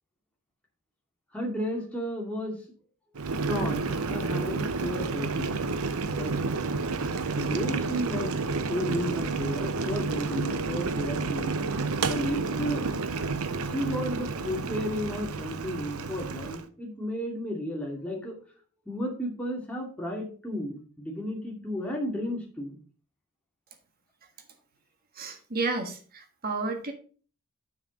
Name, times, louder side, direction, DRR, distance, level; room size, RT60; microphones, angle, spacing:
voice 1, 1.3-2.6 3.5-5.6 6.1-6.4 7.3-8.4 8.7-11.6 12.1-12.8 13.7-18.4 18.9-22.8, equal, 5° left, -1 dB, 2.4 m, -33 dB
Boiling, 3.1-16.6, right 4 dB, 70° right, 0.8 m, -30 dB
voice 2, 25.1-26.9, right 3 dB, 40° right, 4 dB, 1.6 m, -31 dB
7.2 x 6.4 x 5.1 m, 0.39 s
head